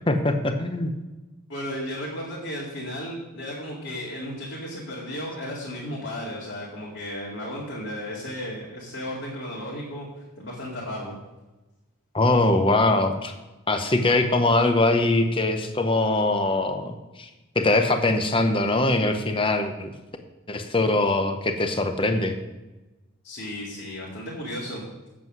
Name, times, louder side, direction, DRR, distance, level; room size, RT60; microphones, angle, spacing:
voice 1, 0.1-0.9 12.1-13.3 13.7-17.3 17.5-19.9 20.5-22.3, left 2 dB, 25° left, 7 dB, 0.8 m, -22 dB
voice 2, 1.5-10.1 10.4-11.2 23.2-24.8, equal, 55° left, -6 dB, 2.2 m, -34 dB
8.3 x 7.6 x 6.1 m, 1.1 s
head